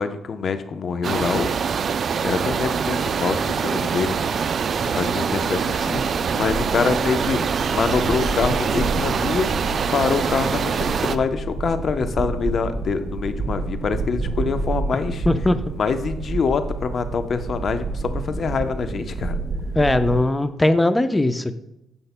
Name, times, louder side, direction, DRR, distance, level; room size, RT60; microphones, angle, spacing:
voice 1, 0.0-1.9 2.2-4.6 4.8-6.0 6.3-7.4 7.7-9.5 9.9-15.3 15.7-19.4, left 5 dB, 50° left, 9 dB, 0.7 m, -25 dB
sound 1, 1.0-11.2, right 6 dB, 50° right, 0.4 m, -24 dB
sound 2, 4.7-20.3, right 3 dB, 30° right, 0.9 m, -30 dB
voice 2, 15.3-15.6 19.8-21.5, left 2 dB, 15° left, 10 dB, 0.6 m, -19 dB
16.0 x 5.4 x 2.2 m, 0.89 s
cardioid pair, 90°, 0 cm